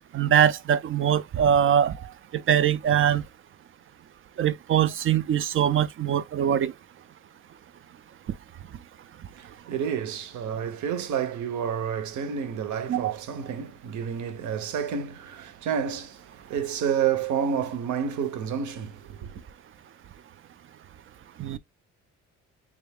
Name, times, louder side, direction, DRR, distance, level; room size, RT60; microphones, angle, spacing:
voice 1, 0.1-1.9 2.3-3.2 4.4-6.7 12.9-13.1 21.4-21.6, right 9 dB, 45° right, 0.4 m, -22 dB
voice 2, 9.4-19.4, right 8 dB, 75° right, 0.8 m, -30 dB
3.5 x 2.4 x 3.4 m
cardioid pair, 90°, 30 cm